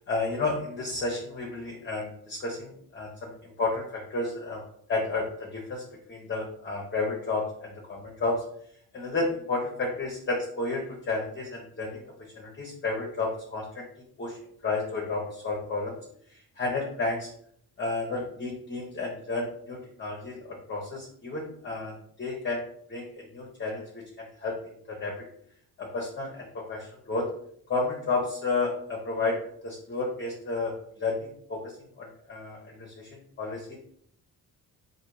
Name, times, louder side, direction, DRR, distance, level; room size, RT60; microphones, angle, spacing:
voice 1, 0.1-4.6 4.9-5.8 6.1-8.4 8.9-12.0 12.3-13.9 14.2-14.4 14.6-16.0 16.3-17.3 17.8-22.6 22.9-24.6 24.9-25.1 25.8-27.3 27.7-29.4 29.6-33.8, left 3 dB, 30° left, -2 dB, 0.9 m, -32 dB
3.7 x 2.7 x 4.7 m, 0.65 s
cardioid pair, 130°, 38 cm